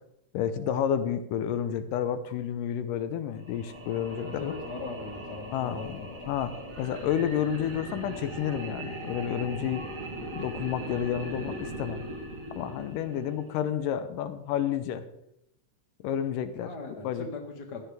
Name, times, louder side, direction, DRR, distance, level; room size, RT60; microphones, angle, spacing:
voice 1, 0.3-4.5 5.5-9.9 10.3-12.0 12.5-15.0 16.0-16.7 17.0-17.3, left 9 dB, 85° left, 10 dB, 2.3 m, -30 dB
sound 1, 3.4-13.7, right 1 dB, 30° right, 2.2 m, -39 dB
voice 2, 4.1-6.2 16.6-17.8, left 3 dB, 35° left, 1 dB, 2.0 m, -40 dB
16.0 x 11.5 x 3.4 m, 0.80 s
omnidirectional pair, 3.7 m